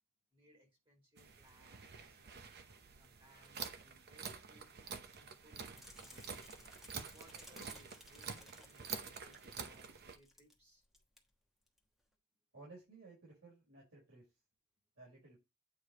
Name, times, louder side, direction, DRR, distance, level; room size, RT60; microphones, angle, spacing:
voice 1, 0.3-2.2 3.0-6.5 7.1-10.8 12.1-12.2, equal, 25° right, 1 dB, 2.2 m, -67 dB
sound 1, 1.2-10.2, right 6 dB, 45° right, 0.8 m, -48 dB
sound 2, 5.7-10.6 10.8-11.2 11.7-11.8, left 1 dB, ahead, 1.1 m, -60 dB
voice 2, 12.5-14.3 15.0-15.4, right 3 dB, 60° right, -4 dB, 4.3 m, -57 dB
8.6 x 4.9 x 3.0 m, 0.25 s
head